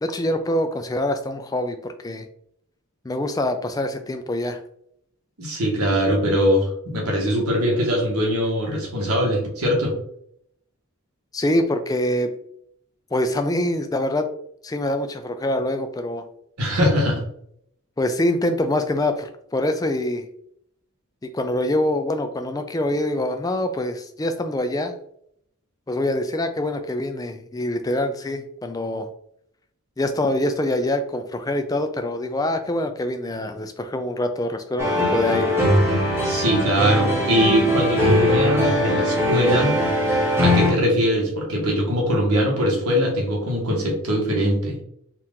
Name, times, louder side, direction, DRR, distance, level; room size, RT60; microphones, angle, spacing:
voice 1, 0.0-2.3 3.0-4.6 11.3-12.3 13.1-14.3 14.6-16.2 18.0-20.3 21.2-24.9 25.9-29.1 30.0-35.6, left 1 dB, 15° left, 7 dB, 0.3 m, -25 dB
voice 2, 5.4-9.9 16.6-17.2 36.2-39.8 40.4-44.8, equal, 85° right, -1 dB, 1.4 m, -21 dB
sound 1, 34.8-40.7, left 1 dB, 10° right, 0.9 m, -20 dB
4.4 x 2.5 x 3.6 m, 0.71 s
head